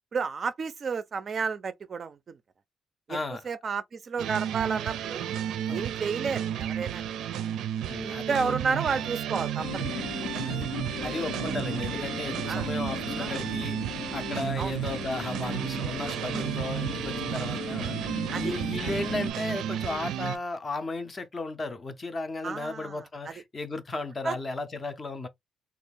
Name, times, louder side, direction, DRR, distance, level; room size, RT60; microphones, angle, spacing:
voice 1, 0.1-2.4 3.1-3.2 3.5-5.3 5.7-7.3 8.0-9.8 10.2-10.3 11.0-11.1 12.5-12.7 13.2-13.3 14.6-14.7 18.3-18.6 22.4-23.0 23.3-23.4 24.2-24.4, right 5 dB, 35° right, 0.4 m, -31 dB
voice 2, 3.1-3.5 5.7-5.9 7.9-9.0 10.4-10.7 11.0-13.8 14.1-18.0 18.3-25.3, left 3 dB, 25° left, 0.5 m, -35 dB
sound 1, 4.2-20.4, right 10 dB, 90° right, 0.5 m, -32 dB
sound 2, 9.6-19.3, left 8 dB, 80° left, 0.5 m, -38 dB
3.5 x 2.3 x 3.3 m
cardioid pair, 175°, 0 cm